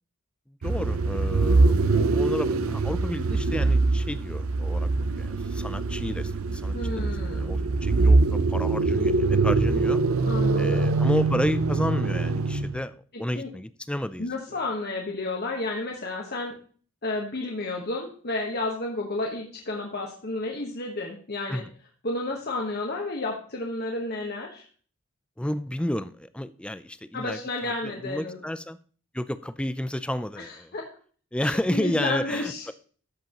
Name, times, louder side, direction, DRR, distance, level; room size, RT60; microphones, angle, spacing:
voice 1, 0.5-4.9 5.2-10.0 10.6-14.3 21.5-21.7 25.4-27.4 27.8-28.8 29.1-30.7 31.3-32.7, left 1 dB, 5° left, 14 dB, 0.4 m, -31 dB
sound 1, 0.6-12.8, right 3 dB, 85° right, 0.7 m, -23 dB
voice 2, 6.7-7.5 10.2-10.9 13.1-13.5 14.2-16.6 17.0-21.6 22.0-24.6 27.1-28.4 30.4-30.9 31.4-32.7, left 2 dB, 50° left, 0 dB, 1.3 m, -31 dB
13.0 x 7.9 x 3.0 m, 0.43 s
head